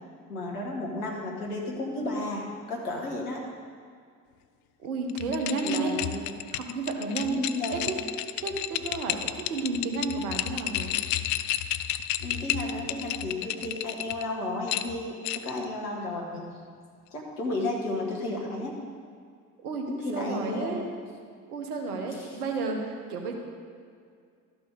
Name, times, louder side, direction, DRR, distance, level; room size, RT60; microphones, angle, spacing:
voice 1, 0.3-3.4 5.6-6.2 7.2-7.9 12.2-15.2 15.4-16.6 17.1-18.8 19.9-20.8 22.1-22.3, left 2 dB, 80° left, -1 dB, 1.5 m, -33 dB
voice 2, 4.8-5.9 6.5-7.4 7.7-7.9 8.4-10.9 19.6-19.9 20.1-20.8 21.5-23.3, right 3 dB, 75° right, 3 dB, 1.3 m, -31 dB
sound 1, 5.1-14.2 14.7-15.6, left 13 dB, 55° left, 0.5 m, -32 dB
12.5 x 6.0 x 5.1 m, 2.2 s
figure-of-eight pair, 50°, 45 cm